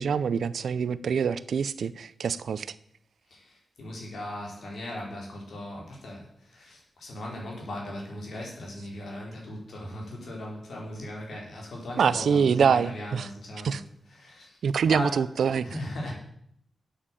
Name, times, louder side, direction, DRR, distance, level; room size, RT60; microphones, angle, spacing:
voice 1, 0.0-2.7 12.0-13.3 13.6-13.8 14.6-15.7, right 6 dB, 85° right, 16 dB, 0.5 m, -25 dB
voice 2, 3.3-13.8 14.1-14.6 14.9-15.2 15.6-16.1, left 1 dB, 70° left, -1 dB, 4.3 m, -38 dB
8.8 x 8.6 x 7.4 m, 0.69 s
wide cardioid pair, 160°, 0 cm